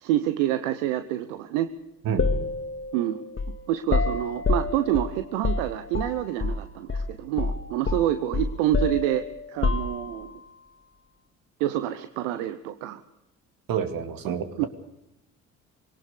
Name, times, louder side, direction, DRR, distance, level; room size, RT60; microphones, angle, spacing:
voice 1, 0.0-1.7 2.9-3.2 3.7-10.3 11.6-13.0 14.2-14.7, right 13 dB, 80° right, 11 dB, 1.0 m, -27 dB
voice 2, 2.0-2.4 13.7-14.7, right 7 dB, 60° right, 9 dB, 2.5 m, -29 dB
sound 1, 2.2-6.6 6.9-7.1 7.4-10.4, left 3 dB, 35° left, 1.9 m, -28 dB
22.5 x 18.0 x 6.7 m, 0.87 s
hypercardioid pair, 55°, 38 cm